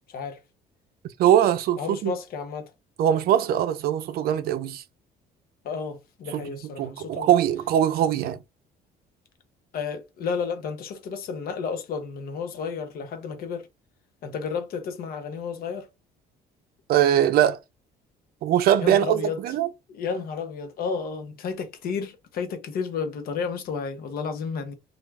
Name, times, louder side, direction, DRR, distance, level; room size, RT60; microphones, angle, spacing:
voice 1, 0.1-0.4 1.8-2.7 5.6-7.3 9.7-13.7 14.2-15.9 18.8-19.4 19.9-24.7, left 5 dB, 60° left, 0.7 m, -32 dB
voice 2, 1.2-2.1 3.0-4.8 6.3-6.5 6.8-8.4 16.9-17.6 18.4-19.7, right 11 dB, 65° right, 0.4 m, -21 dB
2.4 x 2.2 x 3.2 m
cardioid pair, 110°, 17 cm